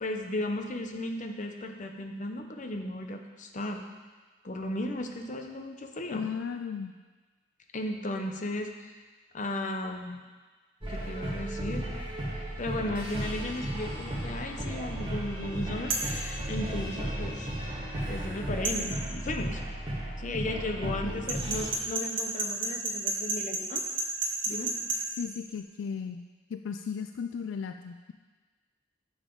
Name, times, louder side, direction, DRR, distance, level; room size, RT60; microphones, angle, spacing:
voice 1, 0.0-3.8 4.4-6.3 7.7-8.9 9.3-10.2 10.9-11.9 12.6-17.5 18.1-19.6 20.2-23.8 24.4-24.7, left 1 dB, 40° left, 4 dB, 0.7 m, -35 dB
voice 2, 6.1-6.9 20.8-21.2 25.2-26.2 26.5-28.1, left 6 dB, 70° left, 7 dB, 0.3 m, -36 dB
sound 1, 10.8-21.7, right 1 dB, 25° right, 1.6 m, -35 dB
sound 2, 15.9-16.1 18.6-18.8 21.3-25.0, right 3 dB, 90° right, 1.4 m, -30 dB
9.5 x 7.2 x 3.8 m, 1.4 s
head